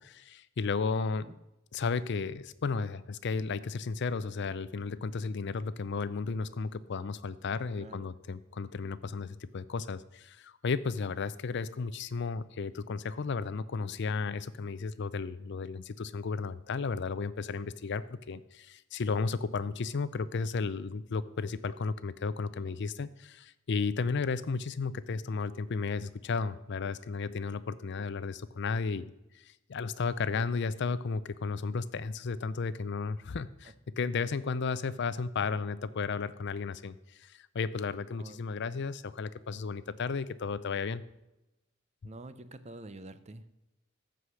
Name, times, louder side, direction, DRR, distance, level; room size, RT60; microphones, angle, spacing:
voice 1, 0.0-1.3 1.7-41.0, left 4 dB, 60° left, 16 dB, 0.5 m, -34 dB
voice 2, 7.8-8.1 33.6-33.7 38.2-38.4 42.0-43.5, right 2 dB, 35° right, 12 dB, 0.6 m, -47 dB
14.0 x 4.9 x 6.3 m, 0.94 s
head